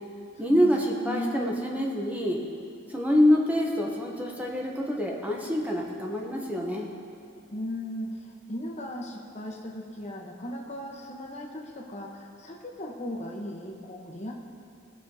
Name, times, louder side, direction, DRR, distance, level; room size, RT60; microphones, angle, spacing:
voice 1, 0.4-2.4 2.9-6.9, equal, 10° right, -1 dB, 0.8 m, -26 dB
voice 2, 1.0-1.7 7.5-14.3, equal, 35° left, 0 dB, 0.9 m, -37 dB
18.0 x 6.2 x 2.8 m, 2.6 s
head